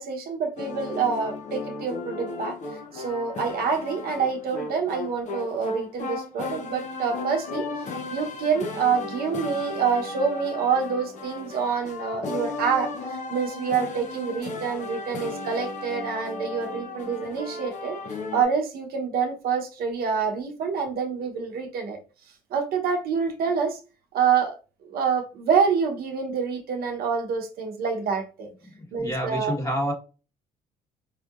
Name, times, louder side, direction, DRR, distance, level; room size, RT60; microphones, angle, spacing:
voice 1, 0.0-2.6 2.9-7.7 8.1-18.0 18.3-22.0 22.5-23.8 24.1-24.6 24.8-28.5 28.9-29.5, right 6 dB, 65° right, 0.9 m, -27 dB
sound 1, 0.6-18.4, left 3 dB, 45° left, 0.7 m, -35 dB
voice 2, 28.6-29.9, equal, 20° left, 1.3 m, -29 dB
4.9 x 2.8 x 2.4 m
cardioid pair, 110°, 17 cm